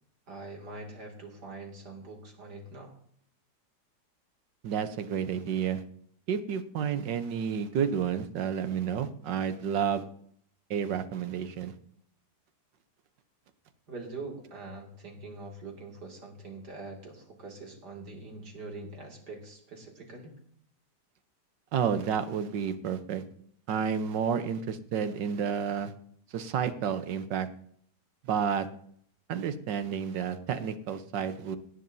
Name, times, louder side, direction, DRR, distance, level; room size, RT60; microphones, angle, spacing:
voice 1, 0.3-3.0 13.9-20.4, right 3 dB, 65° right, 0 dB, 3.0 m, -43 dB
voice 2, 4.6-5.8 6.3-10.0 10.7-11.7 21.7-23.2 23.7-25.9 26.3-27.5 28.2-28.7 29.3-31.6, right 7 dB, 85° right, 10 dB, 1.6 m, -30 dB
18.0 x 9.9 x 2.7 m, 0.63 s
omnidirectional pair, 1.9 m